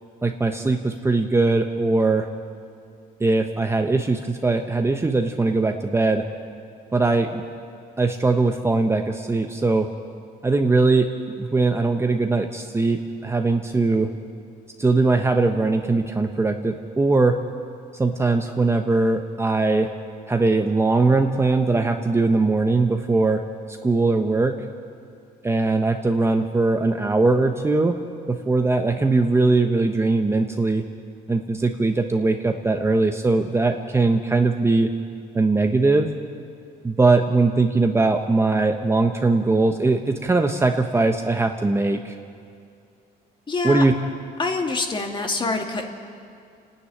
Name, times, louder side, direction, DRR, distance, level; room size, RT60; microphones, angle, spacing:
voice 1, 0.2-2.3 3.2-6.2 6.9-7.4 8.0-9.9 10.4-11.1 11.4-14.1 14.8-17.4 17.9-19.9 20.3-23.4 23.7-24.5 25.4-27.9 28.3-30.8 31.3-34.9 35.3-36.1 36.8-42.2 43.6-43.9, right 3 dB, 15° right, 5 dB, 1.0 m, -20 dB
voice 2, 43.5-43.9 44.4-45.9, left 3 dB, 30° left, 3 dB, 2.3 m, -25 dB
29.5 x 10.0 x 10.0 m, 2.4 s
cardioid pair, 110°, 17 cm